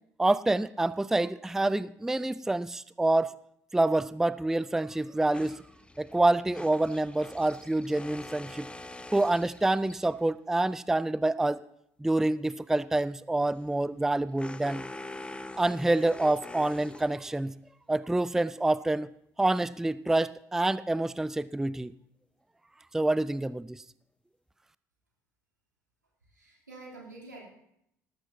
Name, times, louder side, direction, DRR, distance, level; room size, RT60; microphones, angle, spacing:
voice 1, 0.2-3.3 3.7-5.6 6.0-8.7 9.1-11.6 12.0-14.9 15.6-17.5 17.9-19.1 19.4-21.9 22.9-23.8, right 2 dB, 5° right, 18 dB, 0.4 m, -27 dB
sound 1, 5.3-10.3 13.3-17.5, left 2 dB, 10° left, 0.8 m, -45 dB
voice 2, 26.3-27.5, right 2 dB, 85° right, -3 dB, 3.1 m, -47 dB
19.0 x 14.0 x 2.8 m, 0.77 s
figure-of-eight pair, 55°, 10 cm